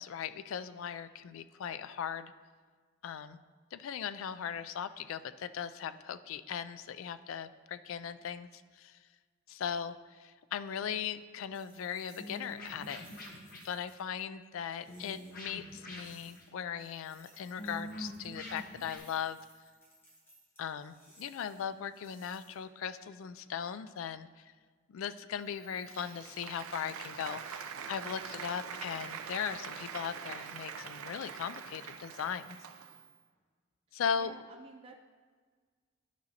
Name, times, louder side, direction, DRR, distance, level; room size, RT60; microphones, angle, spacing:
voice 1, 0.0-2.3 3.0-3.4 3.7-9.0 9.5-13.1 13.6-19.4 20.6-24.5 24.9-32.6 33.9-34.3, left 7 dB, 70° left, 12 dB, 0.3 m, -38 dB
sound 1, 11.5-14.1 14.6-16.5 16.8-22.9, equal, 10° left, 1.3 m, -62 dB
sound 2, 12.2-13.6 14.9-16.5 17.6-19.0, equal, 40° left, 1.1 m, -45 dB
Applause, 25.5-33.1, right 7 dB, 90° right, 0.5 m, -44 dB
voice 2, 34.1-35.0, right 3 dB, 25° right, 1 dB, 0.4 m, -51 dB
12.5 x 5.2 x 2.8 m, 1.6 s
head